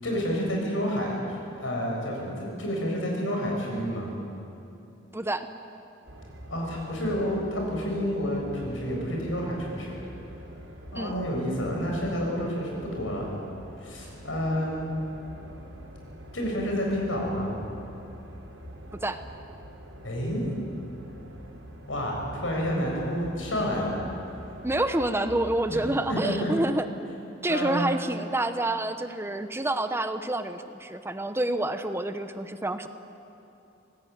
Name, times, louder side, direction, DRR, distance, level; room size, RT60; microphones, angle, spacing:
voice 1, 0.0-1.2 1.6-4.1 6.5-10.0 10.9-13.3 13.8-14.9 16.3-17.6 20.0-20.4 21.9-24.0 25.7-25.8 26.1-26.5 27.5-27.8, equal, 85° left, -1 dB, 7.7 m, -29 dB
voice 2, 5.1-5.5 10.9-11.1 18.9-19.2 24.6-26.9 27.4-32.9, right 1 dB, 15° right, 9 dB, 0.9 m, -28 dB
sound 1, 6.0-25.9, equal, 85° right, 4.3 m, -45 dB
25.5 x 19.0 x 9.5 m, 2.8 s
head